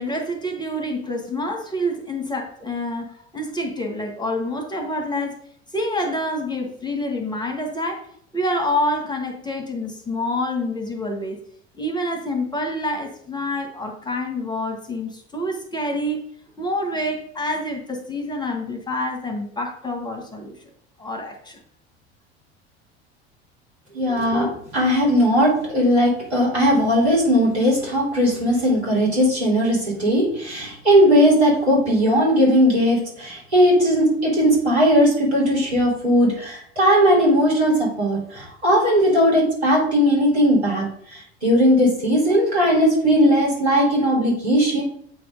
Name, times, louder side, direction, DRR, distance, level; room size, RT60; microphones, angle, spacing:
voice 1, 0.0-5.4 5.7-8.1 8.3-11.5 11.8-16.2 16.6-20.5 21.0-21.6, left 1 dB, 15° left, 4 dB, 1.4 m, -27 dB
voice 2, 23.9-44.8, equal, 90° right, -5 dB, 3.2 m, -18 dB
7.9 x 3.4 x 5.2 m, 0.65 s
hypercardioid pair, 70°, 32 cm